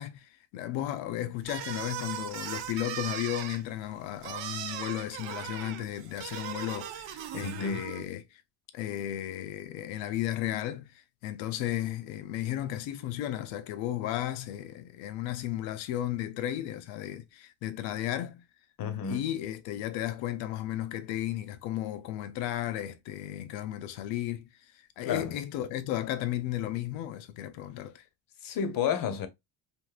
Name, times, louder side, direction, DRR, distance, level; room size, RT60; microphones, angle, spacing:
voice 1, 0.0-8.4 8.7-18.4 19.1-28.0, left 13 dB, 85° left, 0.6 m, -34 dB
sound 1, 1.4-8.1, right 11 dB, 80° right, 0.6 m, -39 dB
voice 2, 7.4-7.9 18.8-19.2 25.0-25.3 28.4-29.3, left 7 dB, 50° left, 0.7 m, -31 dB
3.6 x 2.6 x 2.3 m
cardioid pair, 120°, 45 cm